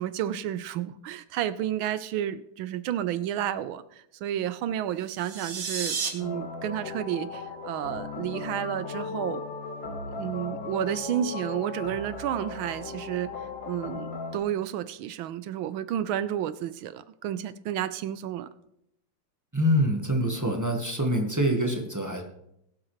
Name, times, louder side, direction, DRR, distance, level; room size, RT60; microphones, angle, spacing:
voice 1, 0.0-3.8 4.2-9.4 10.1-13.3 13.6-18.5, right 11 dB, 75° right, 14 dB, 1.4 m, -31 dB
sound 1, 5.0-6.1, right 5 dB, 40° right, 1.3 m, -32 dB
sound 2, 6.2-14.4, left 4 dB, 60° left, 2.1 m, -37 dB
voice 2, 19.5-22.2, equal, 10° right, 2 dB, 1.0 m, -25 dB
21.5 x 7.6 x 3.1 m, 0.80 s
omnidirectional pair, 2.3 m